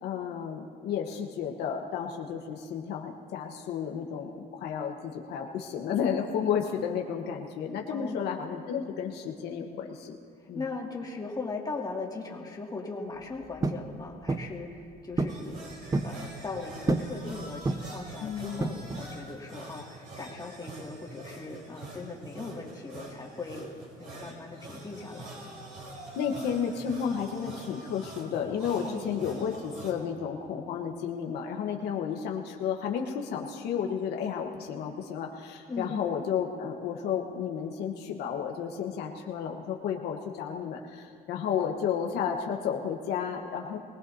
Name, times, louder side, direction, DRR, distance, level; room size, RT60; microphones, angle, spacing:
voice 1, 0.0-10.1 10.5-10.6 18.2-18.8 26.2-43.8, left 7 dB, 80° left, 1 dB, 1.2 m, -32 dB
voice 2, 10.4-15.7 16.0-23.7 24.0-25.3 28.9-29.1 35.7-36.1, left 3 dB, 20° left, -2 dB, 2.2 m, -39 dB
sound 1, 13.6-13.9 14.3-14.6 15.2-15.4 15.7-16.2 16.9-17.2 17.6-18.0 18.6-19.1, right 3 dB, 20° right, 0.6 m, -29 dB
sound 2, 15.3-29.9, right 2 dB, 55° right, 4.0 m, -45 dB
23.0 x 18.0 x 2.8 m, 2.2 s
cardioid pair, 110°, 17 cm